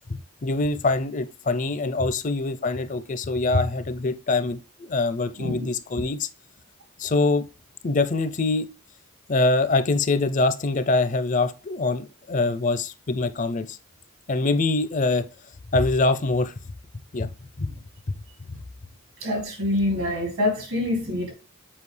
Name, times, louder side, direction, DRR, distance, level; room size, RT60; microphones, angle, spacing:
voice 1, 0.4-6.3 7.0-7.4 7.8-8.7 9.3-13.8 14.3-15.3 15.7-16.5 17.1-17.3 17.6-17.7, left 3 dB, 35° left, 0.5 m, -24 dB
voice 2, 19.2-21.3, left 1 dB, 70° right, 2.7 m, -25 dB
7.2 x 4.9 x 3.2 m
head